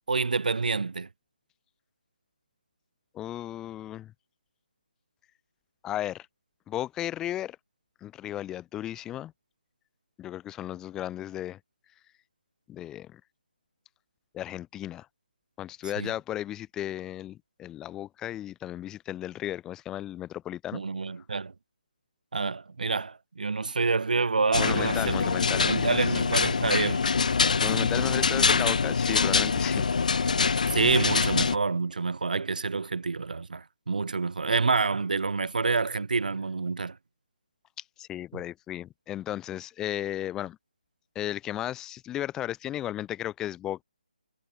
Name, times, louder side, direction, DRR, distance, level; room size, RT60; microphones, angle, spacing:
voice 1, 0.1-1.1 16.0-16.1 20.7-21.5 22.3-25.3 25.7-27.0 30.7-37.0, right 4 dB, 70° right, 4.9 m, -27 dB
voice 2, 3.1-4.1 5.8-6.3 6.7-7.6 8.0-9.3 10.2-11.6 12.7-13.2 14.3-15.1 15.6-20.8 24.6-25.8 27.6-29.9 38.0-40.6 41.1-43.8, left 12 dB, 10° left, 6.1 m, -34 dB
sound 1, 24.5-31.6, left 5 dB, 60° left, 3.4 m, -25 dB
figure-of-eight pair, 155°, 5 cm